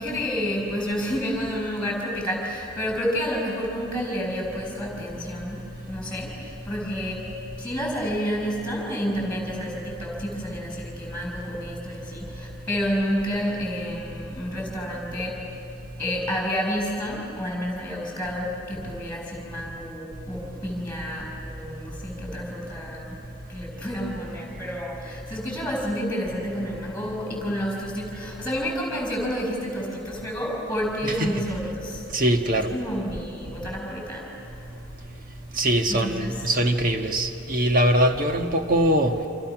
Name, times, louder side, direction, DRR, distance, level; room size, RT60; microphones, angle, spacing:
voice 1, 0.0-7.3 7.6-15.4 16.0-23.2 23.5-32.0 32.6-34.7 35.9-36.4, equal, 10° left, 0 dB, 6.4 m, -30 dB
voice 2, 32.1-32.7 35.6-39.1, right 1 dB, 45° right, 4 dB, 1.5 m, -22 dB
29.5 x 27.5 x 6.1 m, 2.9 s
head